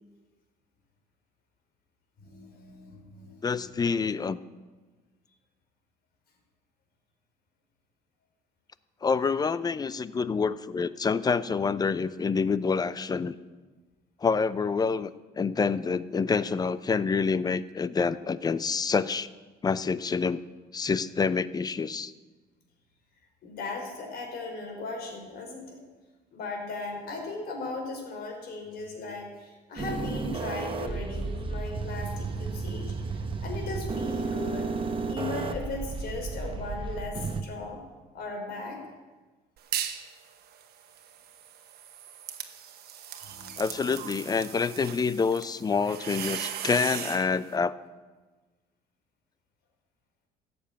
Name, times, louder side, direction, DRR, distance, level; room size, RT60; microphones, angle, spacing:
voice 1, 2.2-3.7 23.4-25.8 26.3-34.7 35.1-37.8 38.1-38.8 43.2-44.2, left 3 dB, 65° left, 1 dB, 4.2 m, -38 dB
voice 2, 3.4-4.4 9.0-13.4 14.2-19.3 19.6-20.4 20.7-22.1 43.6-47.7, left 5 dB, 25° left, 16 dB, 0.5 m, -27 dB
sound 1, 29.8-37.4, right 4 dB, 30° right, 1.1 m, -33 dB
sound 2, 39.6-40.1 40.5-47.3, right 9 dB, 70° right, 1.2 m, -38 dB
14.0 x 7.0 x 8.8 m, 1.3 s
cardioid pair, 110°, 17 cm